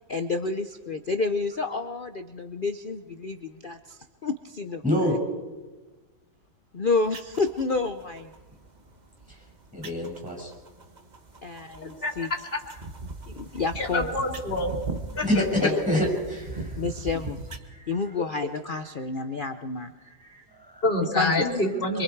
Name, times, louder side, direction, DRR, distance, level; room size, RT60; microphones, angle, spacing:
voice 1, 0.1-4.8 6.7-8.3 11.4-11.6 11.9-12.3 13.3-14.2 15.6-15.8 16.8-17.5 17.9-19.9 21.1-21.4, left 4 dB, 90° left, 9 dB, 0.4 m, -29 dB
voice 2, 4.8-5.1 9.7-10.5 15.2-16.8 17.7-17.9 18.9-19.0 20.0-20.8, left 1 dB, 5° right, 0 dB, 5.9 m, -27 dB
sound 1, 7.0-17.6, right 3 dB, 25° right, 1.1 m, -40 dB
voice 3, 13.8-14.7 15.1-15.4 18.2-18.3 20.8-22.0, left 1 dB, 30° left, 1 dB, 3.0 m, -26 dB
26.0 x 23.5 x 4.7 m, 1.2 s
omnidirectional pair, 2.1 m